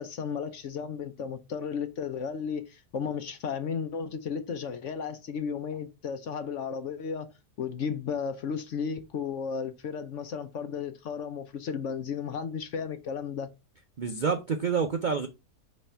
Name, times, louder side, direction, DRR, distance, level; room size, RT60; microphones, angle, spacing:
voice 1, 0.0-7.3 7.6-13.5, left 6 dB, 60° left, 0.9 m, -34 dB
voice 2, 14.0-15.3, right 5 dB, 70° right, 0.4 m, -28 dB
5.6 x 3.2 x 5.4 m
omnidirectional pair, 1.7 m